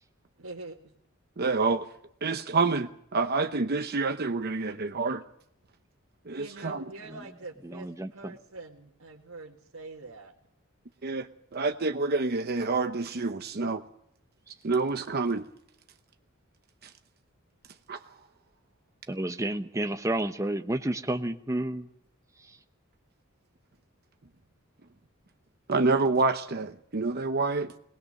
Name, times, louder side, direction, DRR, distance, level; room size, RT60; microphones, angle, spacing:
voice 1, 0.4-0.8 6.3-10.3, right 3 dB, 80° right, -2 dB, 1.9 m, -44 dB
voice 2, 1.4-1.9 2.2-5.2 6.3-6.8 11.0-13.8 14.6-15.5 16.8-16.9 17.9-18.0 25.7-27.7, right 3 dB, 50° right, 7 dB, 0.9 m, -28 dB
voice 3, 7.6-8.3 19.1-21.9 22.4-22.6, right 1 dB, 15° right, 8 dB, 0.9 m, -31 dB
22.5 x 19.5 x 6.6 m, 0.70 s
head